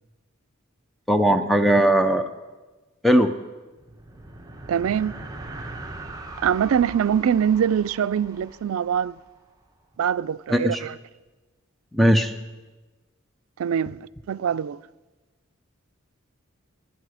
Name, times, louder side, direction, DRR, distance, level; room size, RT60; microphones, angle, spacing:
voice 1, 1.1-2.3 3.0-3.3 10.5-10.8 11.9-12.3, equal, ahead, 0.5 m, -18 dB
sound 1, 3.7-9.4, right 2 dB, 20° right, 1.1 m, -40 dB
voice 2, 4.7-5.1 6.4-9.2 10.0-11.0 13.6-14.0 14.3-14.8, right 8 dB, 75° right, 0.4 m, -23 dB
23.0 x 8.5 x 4.9 m
head